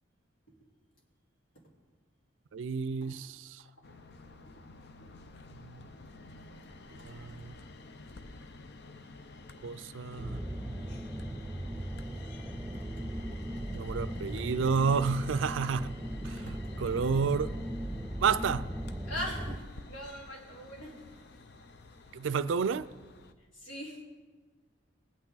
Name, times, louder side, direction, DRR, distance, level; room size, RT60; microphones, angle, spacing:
voice 1, 2.5-3.6 5.6-5.9 7.0-7.5 9.6-10.4 13.7-15.9 16.2-17.5 18.2-18.7 22.1-22.9, right 5 dB, 70° right, 0.4 m, -30 dB
sound 1, 3.8-23.3, left 3 dB, 60° left, 0.6 m, -51 dB
sound 2, 10.2-19.6, right 1 dB, 10° right, 0.5 m, -38 dB
voice 2, 19.1-21.2 23.6-24.0, equal, 80° left, 4.0 m, -41 dB
20.5 x 8.4 x 4.0 m
head